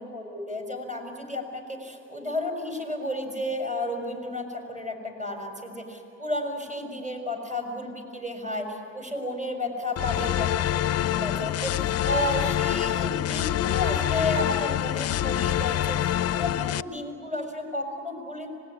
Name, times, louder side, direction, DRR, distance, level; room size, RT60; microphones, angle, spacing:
voice 1, 0.0-10.5 10.7-18.5, left 1 dB, 25° right, 3 dB, 6.3 m, -32 dB
sound 1, 10.0-16.8, left 12 dB, 55° left, 0.5 m, -26 dB
25.5 x 20.0 x 9.9 m, 2.6 s
cardioid pair, 90°, 30 cm